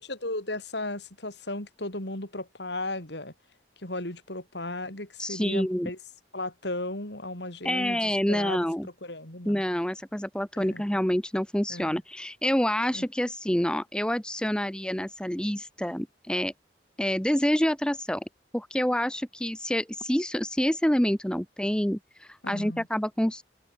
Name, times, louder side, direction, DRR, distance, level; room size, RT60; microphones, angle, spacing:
voice 1, 0.0-3.3 3.8-6.0 6.3-9.6 10.6-10.8 11.7-12.0 12.9-13.1 22.4-22.9, left 2 dB, 65° left, 5.5 m, -35 dB
voice 2, 5.2-5.9 7.6-8.9 9.5-16.5 17.0-18.2 18.5-23.4, equal, 5° left, 0.8 m, -27 dB
open air
head